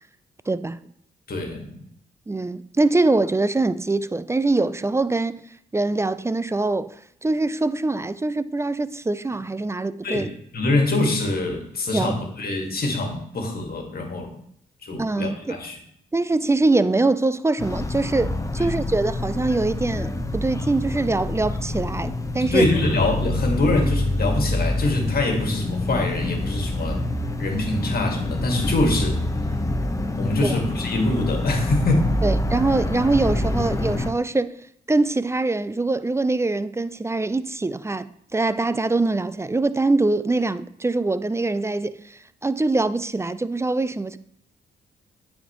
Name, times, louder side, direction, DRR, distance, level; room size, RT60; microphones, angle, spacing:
voice 1, 0.5-0.8 2.3-5.4 5.7-7.0 7.2-10.3 11.9-12.1 15.0-15.6 16.1-22.7 30.4-30.6 32.2-34.6 34.9-44.2, right 2 dB, 15° right, 0.4 m, -23 dB
voice 2, 1.3-1.8 10.0-10.3 10.5-14.4 14.9-15.8 18.6-18.9 22.5-27.0 27.4-29.2 30.2-32.1, left 2 dB, 50° left, 1.9 m, -24 dB
sound 1, 17.6-34.1, left 1 dB, 15° left, 0.9 m, -26 dB
9.3 x 4.4 x 3.1 m
hypercardioid pair, 45°, 20 cm